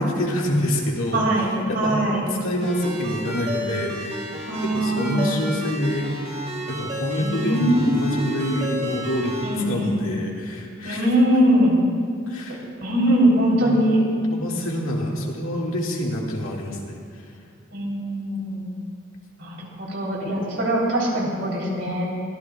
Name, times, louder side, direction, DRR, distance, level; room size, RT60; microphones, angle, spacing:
voice 1, 0.0-1.3 1.7-2.1 2.4-4.2 4.6-6.1 6.7-11.0 12.3-12.6 13.6-13.9 14.3-17.0, equal, 85° left, -2 dB, 2.1 m, -26 dB
voice 2, 1.1-2.2 4.5-5.4 7.2-8.4 9.4-10.0 10.8-11.8 12.8-14.0 17.7-18.7 19.4-22.1, right 1 dB, 60° right, -3 dB, 3.6 m, -22 dB
Ringtone, 2.6-9.5, equal, 35° right, 3.0 m, -32 dB
22.5 x 14.0 x 2.4 m, 2.3 s
head